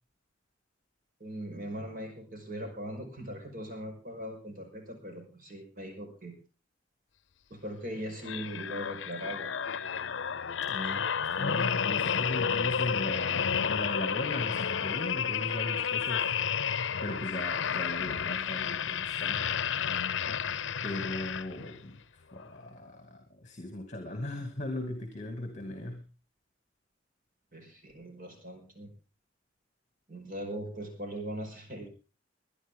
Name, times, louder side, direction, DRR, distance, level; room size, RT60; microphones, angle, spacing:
voice 1, 1.2-6.3 7.5-9.6 27.5-28.9 30.1-31.9, equal, 50° right, 4 dB, 5.2 m, -40 dB
sound 1, 8.2-21.8 22.4-22.5, left 7 dB, 75° left, 0.7 m, -31 dB
voice 2, 10.7-11.1 11.4-16.3 17.0-19.4 20.8-22.0 22.3-26.0, left 1 dB, 40° left, 5 dB, 2.5 m, -37 dB
22.0 x 11.0 x 3.8 m, 0.35 s
head